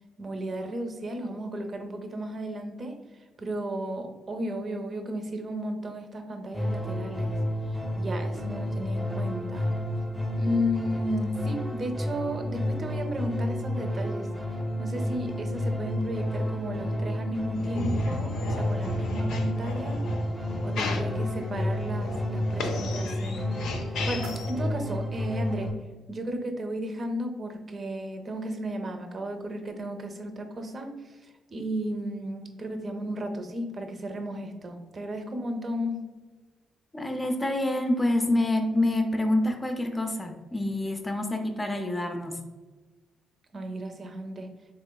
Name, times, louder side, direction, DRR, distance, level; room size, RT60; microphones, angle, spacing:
voice 1, 0.2-7.4 7.7-9.7 10.4-14.3 14.8-20.1 20.6-25.8 26.1-36.1 43.5-44.5, equal, 40° right, 5 dB, 0.5 m, -34 dB
sound 1, 6.5-25.7, left 1 dB, ahead, 0.8 m, -31 dB
sound 2, 17.5-24.5, left 2 dB, 85° left, 0.4 m, -34 dB
sound 3, 23.5-25.5, right 5 dB, 90° right, 0.4 m, -51 dB
voice 2, 36.9-42.4, left 1 dB, 15° left, 4 dB, 0.4 m, -27 dB
4.0 x 3.0 x 2.2 m, 1.3 s
cardioid pair, 90°, 0 cm